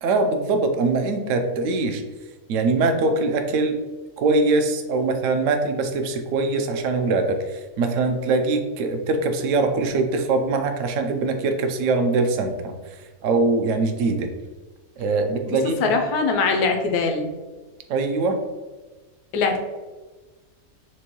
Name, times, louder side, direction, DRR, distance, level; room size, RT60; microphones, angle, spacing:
voice 1, 0.0-2.0 2.5-3.8 4.2-13.0 13.2-14.3 15.0-15.9 17.9-18.4, right 3 dB, 65° right, 6 dB, 0.9 m, -22 dB
voice 2, 15.5-17.4 19.3-19.6, left 4 dB, 80° left, 4 dB, 1.1 m, -22 dB
6.0 x 2.2 x 3.0 m, 1.3 s
omnidirectional pair, 1.6 m